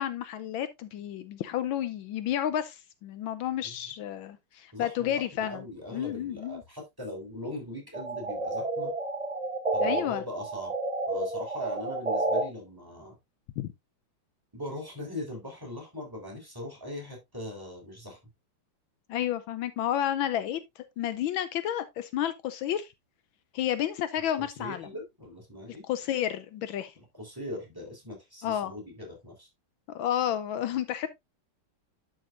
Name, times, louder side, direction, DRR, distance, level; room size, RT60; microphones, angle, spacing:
voice 1, 0.0-5.6 5.9-6.6 9.8-10.2 13.6-13.7 19.1-20.6 21.0-22.9 23.5-24.9 25.9-26.9 28.4-28.7 29.9-31.1, left 11 dB, 80° left, 1.4 m, -31 dB
voice 2, 4.7-8.9 9.7-10.7 11.1-13.2 14.5-18.2 24.6-25.8 27.2-29.5, left 1 dB, 10° right, 3.8 m, -40 dB
sound 1, 7.9-10.0 10.4-12.4, right 2 dB, 25° right, 0.9 m, -30 dB
11.0 x 6.5 x 2.5 m
omnidirectional pair, 2.2 m